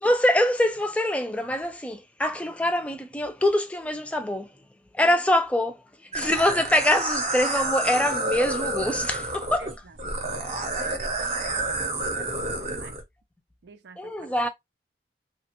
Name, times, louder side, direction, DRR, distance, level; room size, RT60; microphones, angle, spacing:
voice 1, 0.0-4.5 4.9-5.8 6.1-9.7 14.0-14.5, left 1 dB, 5° left, 0.4 m, -24 dB
sound 1, 6.1-13.0, right 2 dB, 35° right, 0.7 m, -29 dB
voice 2, 9.6-13.0 13.6-14.4, right 4 dB, 80° right, 0.5 m, -47 dB
2.9 x 2.2 x 2.9 m
head